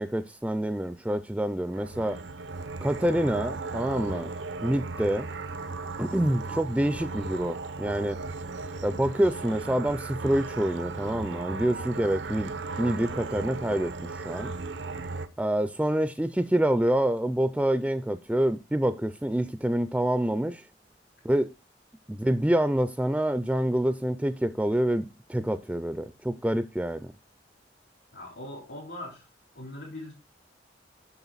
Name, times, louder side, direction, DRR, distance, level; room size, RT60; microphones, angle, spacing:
voice 1, 0.0-2.2 2.8-4.3 4.6-5.3 6.0-8.2 8.8-12.5 12.8-14.5 15.4-20.7 21.2-21.5 22.1-27.1, right 1 dB, 5° right, 0.3 m, -27 dB
sound 1, 1.7-15.3, right 3 dB, 85° right, 0.7 m, -36 dB
voice 2, 28.1-29.3 29.5-30.1, left 1 dB, 85° left, 3.5 m, -41 dB
7.1 x 6.2 x 3.9 m
head